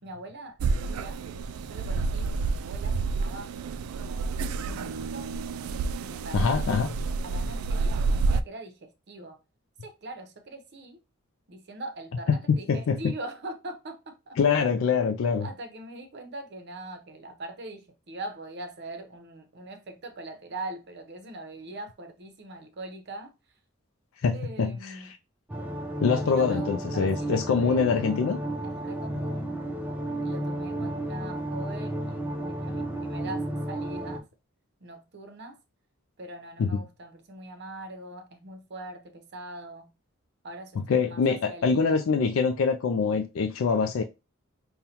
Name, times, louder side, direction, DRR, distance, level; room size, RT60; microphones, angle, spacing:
voice 1, 0.0-1.2 1.6-3.5 3.9-5.3 6.0-6.6 7.2-9.4 9.8-11.0 11.5-14.4 15.4-23.6 24.3-25.2 26.1-28.2 28.6-29.6 30.2-34.3 34.8-35.6 36.2-39.9 40.4-42.0, right 2 dB, 55° right, 0.8 m, -42 dB
sound 1, 0.6-8.4, right 4 dB, 85° right, 0.3 m, -29 dB
voice 2, 6.3-6.9 12.3-13.1 14.4-15.5 24.2-24.7 26.0-28.4 36.6-36.7 40.9-44.0, left 5 dB, 70° left, 0.4 m, -24 dB
sound 2, 25.5-34.2, right 1 dB, 10° right, 0.5 m, -32 dB
5.3 x 2.2 x 2.8 m
head